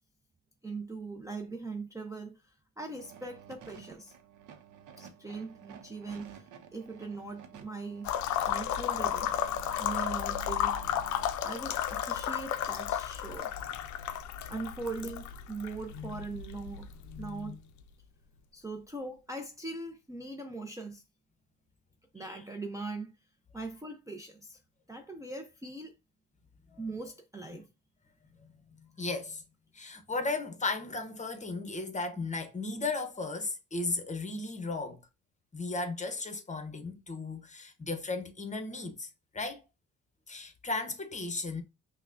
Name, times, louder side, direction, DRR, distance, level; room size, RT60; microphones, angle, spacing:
voice 1, 0.6-4.2 5.0-8.1 8.5-9.3 9.8-10.7 11.4-13.5 14.5-16.9 17.2-17.6 18.5-21.0 22.1-23.1 23.5-24.6 24.9-25.9 26.8-27.7, right 3 dB, 10° right, 0.5 m, -40 dB
sound 1, 2.9-11.3, right 8 dB, 90° right, 0.7 m, -52 dB
sound 2, 8.0-17.8, left 10 dB, 70° left, 0.5 m, -33 dB
voice 2, 28.8-29.4 29.7-35.0 35.5-39.1 39.3-39.6 40.3-41.6, left 3 dB, 25° left, 0.9 m, -35 dB
5.5 x 2.2 x 2.5 m
cardioid pair, 90°, 30 cm